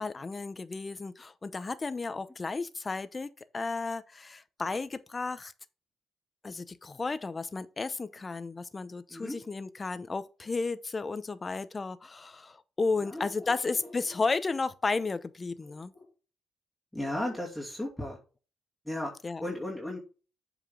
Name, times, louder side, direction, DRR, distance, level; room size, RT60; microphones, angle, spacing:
voice 1, 0.0-5.5 6.4-15.9 19.2-19.4, left 3 dB, 30° left, 0.7 m, -33 dB
voice 2, 13.0-14.2 15.7-16.1 16.9-18.2 18.8-19.1 19.4-20.0, left 1 dB, ahead, 2.4 m, -36 dB
7.4 x 5.0 x 3.6 m
cardioid pair, 90°, 0 cm